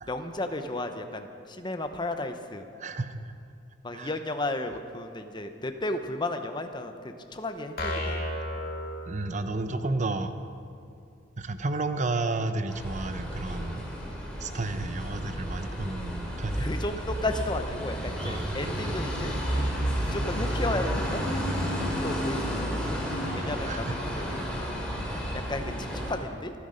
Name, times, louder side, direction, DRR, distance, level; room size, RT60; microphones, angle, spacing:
voice 1, 0.1-2.7 3.8-8.2 16.6-19.3 20.0-21.2 21.8-22.8 23.3-24.4 25.3-26.5, left 2 dB, 25° left, 7 dB, 0.9 m, -34 dB
voice 2, 2.8-3.2 3.9-4.1 9.1-10.3 11.4-13.9 14.4-16.7 18.2-18.4 23.2-24.0 24.4-24.5 25.1-25.2, right 2 dB, 40° right, 9 dB, 0.7 m, -32 dB
Jaws Harp- Hello, 7.8-9.7, left 1 dB, 50° left, 2.2 m, -33 dB
sound 1, 12.7-26.2, equal, 5° left, 3.1 m, -31 dB
26.0 x 9.7 x 5.2 m, 2.5 s
head